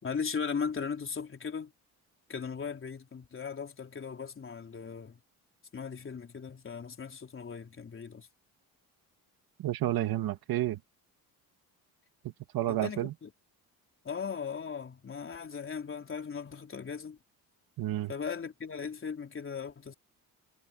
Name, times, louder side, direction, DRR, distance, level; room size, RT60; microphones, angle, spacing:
voice 1, 0.0-1.7 2.3-5.2 5.7-8.3 12.7-13.3 14.0-17.2 18.1-19.9, left 6 dB, 35° left, 3.8 m, -38 dB
voice 2, 9.6-10.8 12.5-13.1 17.8-18.1, right 14 dB, 70° right, 2.3 m, -30 dB
cardioid pair, 115°, 37 cm